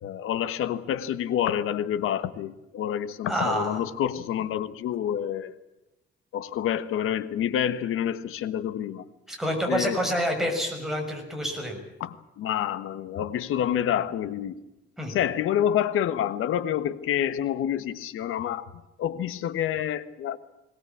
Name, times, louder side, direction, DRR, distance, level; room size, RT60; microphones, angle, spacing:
voice 1, 0.0-5.5 6.3-9.0 9.7-10.0 12.0-14.6 15.1-18.7 19.0-20.4, left 10 dB, 90° left, 13 dB, 1.4 m, -28 dB
voice 2, 3.3-3.8 9.3-11.8 15.0-15.1, equal, ahead, 1 dB, 6.4 m, -28 dB
21.5 x 19.0 x 8.6 m, 0.96 s
cardioid pair, 135°, 21 cm